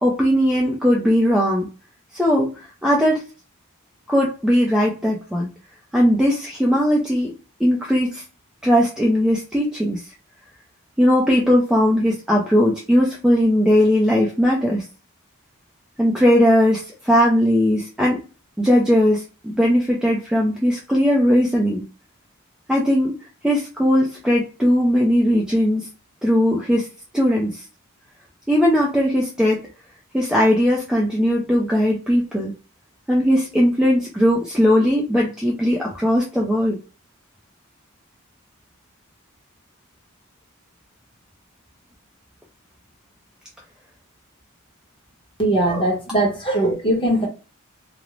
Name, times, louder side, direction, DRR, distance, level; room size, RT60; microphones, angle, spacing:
voice 1, 0.0-1.7 2.1-3.2 4.1-5.5 5.9-7.3 7.6-8.2 8.6-10.0 11.0-14.8 16.0-18.2 18.6-21.8 22.7-23.1 23.4-25.9 26.2-26.9 27.1-27.6 28.5-29.6 30.1-32.5 33.1-36.8, equal, 5° right, 0.3 m, -18 dB
voice 2, 45.4-47.3, right 1 dB, 25° left, 0.9 m, -20 dB
2.4 x 2.0 x 3.0 m
head